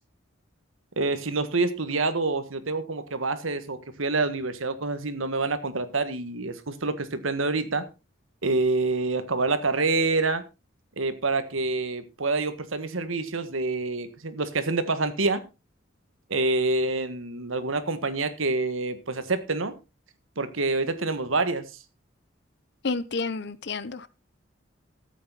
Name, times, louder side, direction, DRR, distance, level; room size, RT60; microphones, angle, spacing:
voice 1, 1.0-7.9 8.4-10.4 11.0-15.4 16.3-19.7 20.4-21.7, right 3 dB, 85° right, 11 dB, 1.5 m, -27 dB
voice 2, 22.8-24.1, left 4 dB, 55° left, 17 dB, 0.8 m, -30 dB
13.5 x 8.6 x 4.1 m, 0.28 s
head